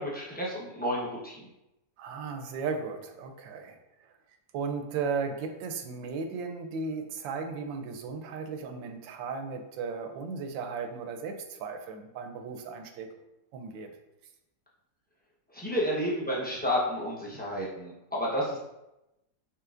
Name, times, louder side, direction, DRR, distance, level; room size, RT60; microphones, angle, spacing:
voice 1, 0.0-1.4 15.5-18.6, equal, 10° left, -6 dB, 0.5 m, -31 dB
voice 2, 2.0-3.8 4.5-13.1 13.5-13.9, right 5 dB, 85° right, 5 dB, 1.3 m, -35 dB
5.7 x 3.5 x 2.5 m, 0.92 s
omnidirectional pair, 2.0 m